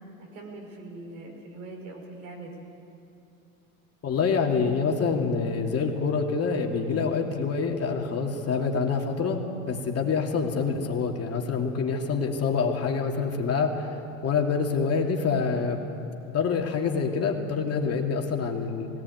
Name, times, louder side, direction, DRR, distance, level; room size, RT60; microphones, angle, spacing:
voice 1, 0.2-2.6, right 2 dB, 80° right, 1 dB, 4.7 m, -42 dB
voice 2, 4.0-15.8 16.3-18.9, left 5 dB, 35° left, 1 dB, 2.9 m, -26 dB
18.5 x 17.5 x 9.5 m, 2.7 s
hypercardioid pair, 85°, 42 cm